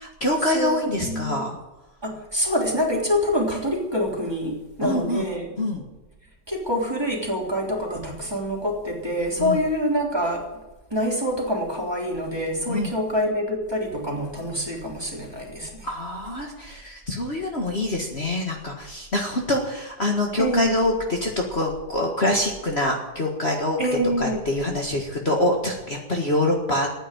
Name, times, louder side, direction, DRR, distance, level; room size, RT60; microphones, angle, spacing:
voice 1, 0.0-1.6 4.8-5.2 5.6-5.8 9.4-9.6 12.7-12.9 15.8-23.8 24.2-27.0, left 1 dB, 40° left, 0 dB, 2.0 m, -25 dB
voice 2, 0.5-1.4 2.0-5.5 6.5-10.4 10.9-15.9 20.4-20.7 23.8-24.5, equal, 15° right, -2 dB, 3.3 m, -26 dB
15.5 x 9.4 x 9.1 m, 1.1 s
omnidirectional pair, 1.8 m